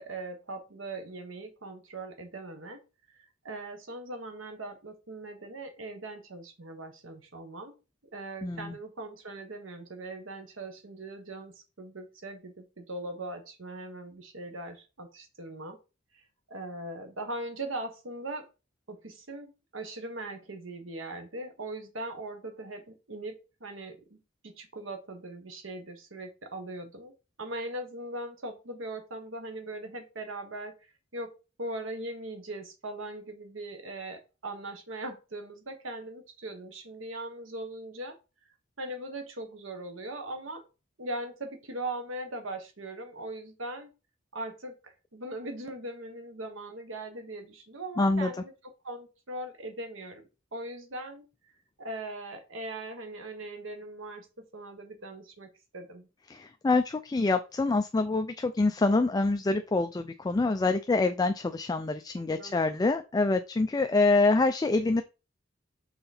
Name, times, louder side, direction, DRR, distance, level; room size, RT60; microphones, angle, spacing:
voice 1, 0.0-2.8 3.1-7.7 8.1-15.8 16.5-18.5 18.9-24.2 24.4-27.1 27.4-30.7 31.1-31.3 31.6-38.2 38.8-40.6 41.0-43.9 44.3-44.8 45.1-48.5 48.8-51.2 51.8-56.1 62.3-62.6, right 2 dB, 85° right, 6 dB, 1.3 m, -40 dB
voice 2, 8.4-8.7 48.0-48.3 56.3-65.0, left 3 dB, 20° left, 8 dB, 0.3 m, -26 dB
5.8 x 3.8 x 4.2 m, 0.30 s
head